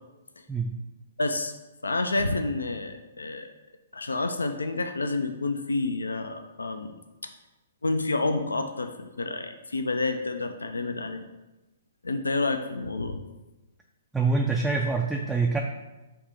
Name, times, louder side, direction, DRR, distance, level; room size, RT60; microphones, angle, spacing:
voice 1, 1.2-1.5 1.8-3.5 3.9-7.0 7.8-11.2 12.0-13.2, left 2 dB, 85° left, 7 dB, 0.3 m, -29 dB
voice 2, 14.1-15.6, right 4 dB, 5° right, 0 dB, 0.3 m, -25 dB
3.5 x 2.8 x 4.7 m, 1.1 s
figure-of-eight pair, 120°, 0 cm